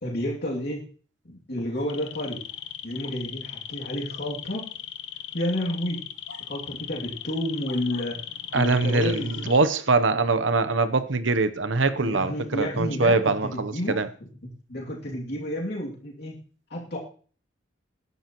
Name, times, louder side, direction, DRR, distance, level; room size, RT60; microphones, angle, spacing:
voice 1, 0.0-0.8 1.2-2.4 2.8-4.7 5.3-6.1 6.5-8.2 8.5-9.5 12.0-14.0 14.7-16.4 16.7-17.0, left 1 dB, 55° left, 2.6 m, -30 dB
sound 1, 1.7-9.6, left 10 dB, 80° left, 1.0 m, -38 dB
voice 2, 8.5-14.1, right 3 dB, 75° right, 0.9 m, -23 dB
20.5 x 11.0 x 3.0 m
head